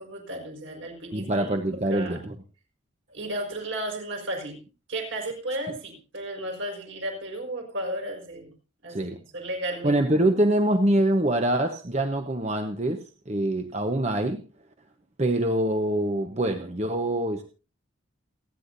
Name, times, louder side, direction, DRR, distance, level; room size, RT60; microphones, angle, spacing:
voice 1, 0.0-1.5 1.9-2.2 3.1-4.6 4.9-8.5 8.8-10.0, right 1 dB, 65° right, 1 dB, 5.1 m, -34 dB
voice 2, 1.1-2.3 8.9-9.2 9.8-13.0 13.3-14.4 15.2-17.4, right 1 dB, 30° right, 5 dB, 1.0 m, -24 dB
29.0 x 9.9 x 2.7 m, 0.33 s
head